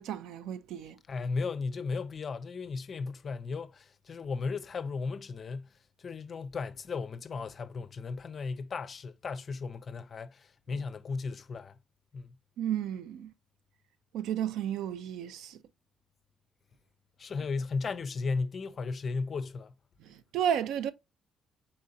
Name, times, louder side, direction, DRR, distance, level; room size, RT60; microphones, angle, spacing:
voice 1, 0.0-1.0 12.6-13.3 14.1-15.6 20.0-20.9, right 9 dB, 85° right, 0.4 m, -33 dB
voice 2, 1.1-5.7 6.0-11.8 12.1-12.3 17.2-19.7, left 4 dB, 45° left, 0.4 m, -35 dB
4.2 x 3.6 x 2.6 m
cardioid pair, 90°, 0 cm